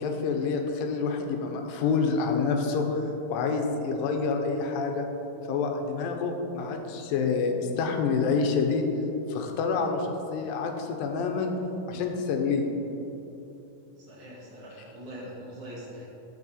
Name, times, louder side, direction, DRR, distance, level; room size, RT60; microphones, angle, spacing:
voice 1, 0.0-3.0 3.3-5.1 5.5-8.9 9.3-11.5 11.9-12.7, left 5 dB, 80° left, 3 dB, 2.4 m, -27 dB
voice 2, 14.0-16.0, equal, 50° right, -5 dB, 1.8 m, -42 dB
12.0 x 4.8 x 4.2 m, 3.0 s
omnidirectional pair, 4.2 m